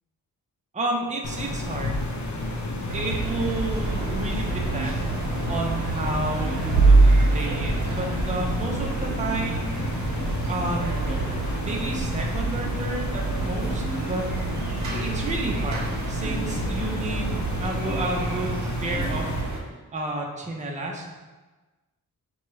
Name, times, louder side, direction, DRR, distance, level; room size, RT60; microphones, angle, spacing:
voice 1, 0.7-2.0 2.9-5.2 5.5-9.7 10.5-14.3 14.9-19.3 19.9-21.1, right 2 dB, 20° right, -1 dB, 0.6 m, -31 dB
sound 1, 1.2-19.4, left 2 dB, 55° left, 0.7 m, -32 dB
sound 2, 2.9-19.6, right 3 dB, 55° right, 0.8 m, -26 dB
5.8 x 2.3 x 3.1 m, 1.2 s
wide cardioid pair, 105°, 34 cm